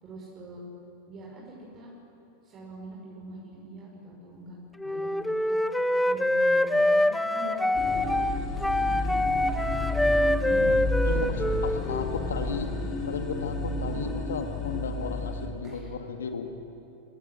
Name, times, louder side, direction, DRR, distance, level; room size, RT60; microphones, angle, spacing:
voice 1, 0.0-0.6 1.1-1.9 2.4-5.6 6.1-9.2 10.1-13.0 13.8-14.3 15.6-15.9, right 1 dB, 30° right, -4 dB, 5.5 m, -44 dB
Wind instrument woodwind instrument, 4.8-12.2, left 1 dB, 5° left, 0.8 m, -25 dB
sound 1, 7.7-15.5, left 2 dB, 35° left, 4.0 m, -31 dB
voice 2, 10.5-12.7 13.0-16.4, left 6 dB, 65° left, 6 dB, 2.1 m, -34 dB
29.0 x 18.0 x 7.7 m, 2.9 s
figure-of-eight pair, 90°, 0 cm